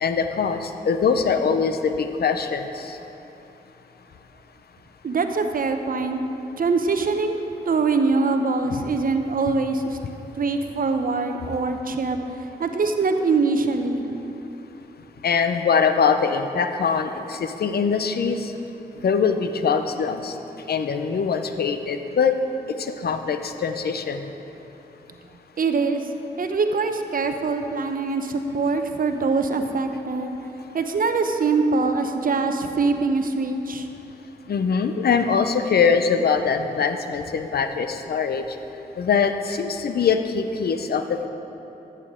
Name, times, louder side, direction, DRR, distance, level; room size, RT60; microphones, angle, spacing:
voice 1, 0.0-3.0 8.7-8.8 15.2-18.5 19.0-20.3 20.7-22.3 22.8-24.3 34.5-38.4 39.0-41.3, left 6 dB, 60° left, 8 dB, 0.6 m, -23 dB
voice 2, 5.0-6.2 6.6-10.0 10.4-12.2 12.6-14.1 25.6-26.1 26.4-30.4 30.7-33.9, right 4 dB, 50° right, 6 dB, 0.8 m, -23 dB
14.5 x 6.9 x 3.7 m, 3.0 s
supercardioid pair, 40°, 18 cm